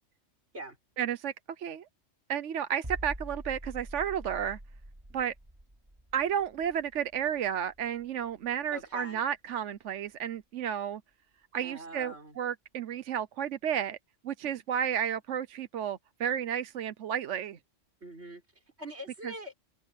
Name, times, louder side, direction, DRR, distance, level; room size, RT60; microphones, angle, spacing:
voice 1, 1.0-1.3 1.6-1.8 2.3-4.6 5.1-5.3 6.1-11.0 11.5-14.0 14.2-17.6, right 9 dB, 75° right, 1.1 m, -32 dB
sound 1, 2.8-8.5 8.8-9.0, right 1 dB, 25° right, 3.7 m, -45 dB
voice 2, 8.7-9.2 11.6-12.4 18.0-18.4 18.8-19.5, equal, 55° right, 5.7 m, -43 dB
omnidirectional pair, 1.3 m